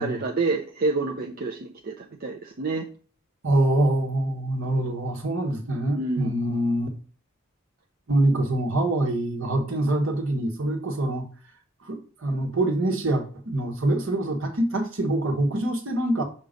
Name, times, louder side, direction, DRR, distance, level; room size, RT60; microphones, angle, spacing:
voice 1, 0.0-2.9 5.9-6.3, right 3 dB, 45° right, 1 dB, 0.6 m, -28 dB
voice 2, 3.4-6.9 8.1-11.2 11.9-16.2, right 1 dB, 70° right, 2 dB, 1.4 m, -25 dB
6.3 x 2.9 x 5.1 m, 0.41 s
head